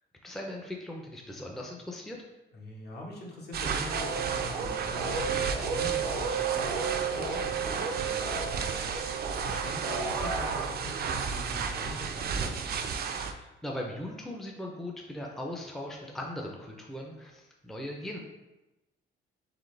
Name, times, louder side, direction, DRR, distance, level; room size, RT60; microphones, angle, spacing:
voice 1, 0.2-2.2 13.2-18.2, left 1 dB, ahead, -1 dB, 0.6 m, -39 dB
voice 2, 2.5-12.8, equal, 55° left, -3 dB, 1.4 m, -43 dB
sound 1, 3.5-13.3, right 6 dB, 50° right, 0.5 m, -33 dB
sound 2, 3.9-10.6, right 5 dB, 85° right, 0.8 m, -33 dB
3.9 x 3.8 x 3.3 m, 1.0 s
cardioid pair, 90°, 20 cm